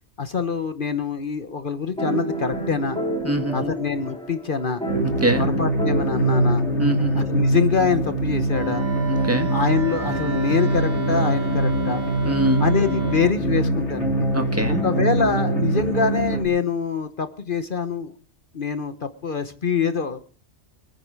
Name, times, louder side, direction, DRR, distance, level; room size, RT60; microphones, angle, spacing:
voice 1, 0.2-3.0 3.5-4.8 5.4-6.6 7.1-8.9 9.5-12.0 12.6-14.3 14.7-18.1 18.5-20.2, left 5 dB, 50° left, 10 dB, 1.2 m, -25 dB
sound 1, 2.0-7.6, right 2 dB, 5° left, 5.0 m, -30 dB
voice 2, 3.2-3.7 5.2-5.5 6.8-7.3 9.1-9.5 12.2-12.6 14.3-14.8, right 1 dB, 10° right, 6 dB, 1.8 m, -23 dB
sound 2, 4.9-16.4, right 1 dB, 75° left, 3.4 m, -23 dB
Wind instrument woodwind instrument, 8.5-13.4, right 7 dB, 60° right, 2.8 m, -31 dB
24.0 x 9.7 x 4.7 m, 0.41 s
omnidirectional pair, 1.2 m